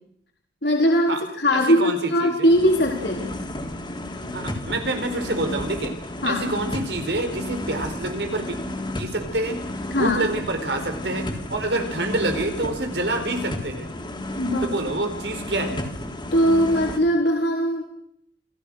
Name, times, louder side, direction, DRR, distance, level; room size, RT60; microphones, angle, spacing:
voice 1, 0.6-3.3 6.2-6.5 9.9-10.3 11.7-11.9 14.4-14.8 16.3-17.9, equal, 65° left, 0 dB, 4.0 m, -20 dB
voice 2, 1.5-2.5 4.3-5.9 6.2-8.6 9.0-9.6 10.0-13.9 14.6-15.8, right 2 dB, 75° right, 6 dB, 4.7 m, -27 dB
sound 1, 2.5-17.0, left 1 dB, 30° left, 3.5 m, -32 dB
28.0 x 16.5 x 6.5 m, 0.68 s
head